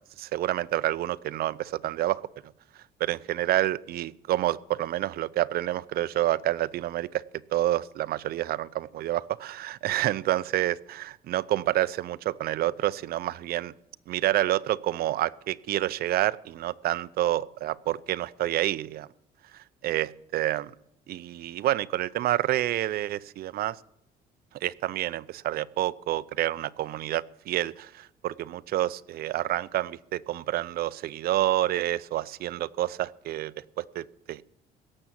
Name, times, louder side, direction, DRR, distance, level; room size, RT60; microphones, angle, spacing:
voice 1, 0.2-2.2 3.0-7.2 7.5-13.7 14.1-19.1 19.5-20.7 21.1-23.8 24.6-34.4, right 14 dB, 65° right, 18 dB, 0.6 m, -28 dB
16.5 x 7.1 x 9.1 m, 0.77 s
cardioid pair, 110°, 17 cm